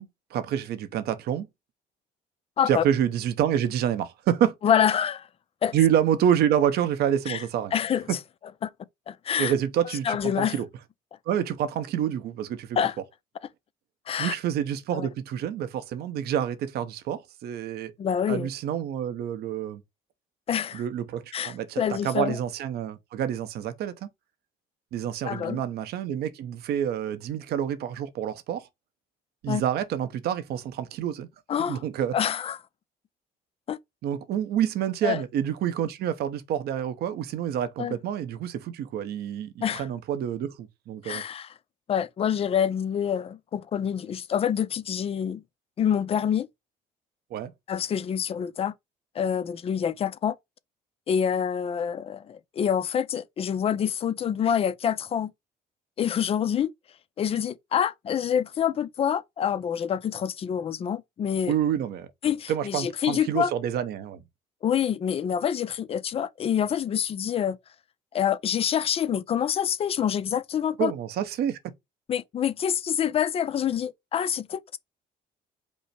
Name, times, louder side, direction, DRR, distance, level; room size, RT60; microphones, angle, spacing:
voice 1, 0.0-1.5 2.7-4.5 5.7-7.7 9.4-10.7 11.3-12.8 14.2-17.9 18.3-19.8 20.7-24.1 24.9-28.7 29.4-31.3 31.6-32.2 34.0-41.2 47.3-47.5 61.5-62.1 62.5-64.2 70.8-71.6, right 9 dB, 70° right, 0.8 m, -28 dB
voice 2, 4.6-5.3 5.6-5.7 7.3-7.4 7.7-8.1 8.6-8.7 9.1-9.5 10.0-10.6 12.8-13.0 14.1-14.3 14.9-15.1 18.0-18.5 20.5-20.8 21.3-22.4 25.2-25.6 29.5-29.6 31.5-31.8 32.1-32.6 33.7-33.8 35.0-35.2 37.8-37.9 39.6-39.9 41.0-41.5 41.9-45.4 45.8-46.5 47.7-48.7 49.2-50.4 51.1-55.3 56.0-56.7 57.2-61.5 62.2-63.5 64.6-67.6 68.1-70.9 72.1-74.8, left 8 dB, 35° left, 0.4 m, -26 dB
5.3 x 2.1 x 4.7 m
cardioid pair, 110°, 17 cm